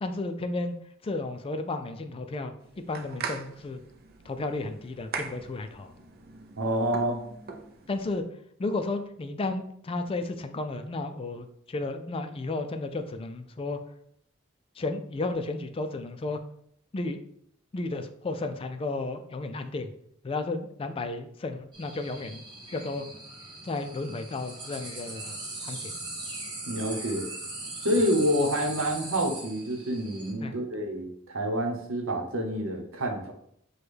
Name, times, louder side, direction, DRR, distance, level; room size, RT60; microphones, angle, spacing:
voice 1, 0.0-2.5 2.9-3.8 4.3-5.9 7.9-8.3 8.6-13.8 14.8-16.4 16.9-17.2 17.7-19.9 20.2-22.4 22.7-23.1 23.6-26.0 30.4-30.6, left 2 dB, 25° left, 8 dB, 0.3 m, -33 dB
sound 1, 2.6-8.2, right 5 dB, 50° right, 0.5 m, -41 dB
voice 2, 6.6-7.2 26.7-27.3 27.8-33.3, equal, 75° right, 2 dB, 0.9 m, -28 dB
sound 2, 21.7-30.3, right 2 dB, 20° right, 0.8 m, -40 dB
6.0 x 2.3 x 3.3 m, 0.71 s
head